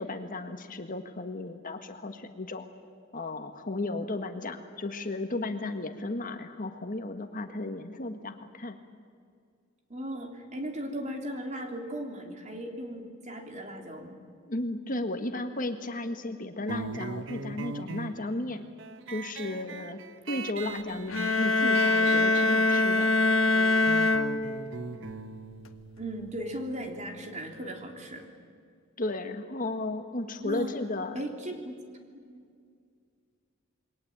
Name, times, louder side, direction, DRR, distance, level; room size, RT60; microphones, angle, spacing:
voice 1, 0.0-2.7 3.1-8.8 14.5-18.6 19.1-20.0 20.3-23.1 29.0-31.1, left 2 dB, 40° left, 7 dB, 1.6 m, -34 dB
voice 2, 9.9-14.2 26.0-28.3 30.4-30.7 31.1-31.7 32.2-32.4, right 1 dB, 35° right, 3 dB, 3.3 m, -37 dB
sound 1, 16.7-27.8, right 4 dB, 60° right, 1.1 m, -41 dB
sound 2, 21.1-24.9, left 2 dB, 80° left, 1.5 m, -24 dB
28.0 x 22.0 x 8.8 m, 2.2 s
head